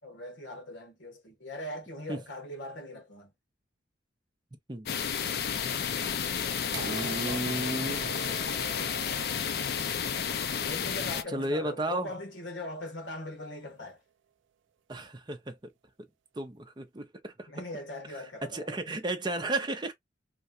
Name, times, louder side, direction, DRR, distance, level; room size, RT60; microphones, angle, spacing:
voice 1, 0.0-3.3 10.6-14.0 17.5-19.0, left 1 dB, 80° left, 1.5 m, -40 dB
sound 1, 4.9-11.2, left 7 dB, 55° left, 0.4 m, -31 dB
sound 2, 6.7-12.6 13.7-13.8, right 8 dB, 80° right, 0.3 m, -44 dB
voice 2, 6.8-8.2 11.3-12.1 14.9-15.7 16.4-17.5 18.1-19.9, right 1 dB, 25° right, 0.6 m, -34 dB
3.2 x 2.4 x 2.6 m
head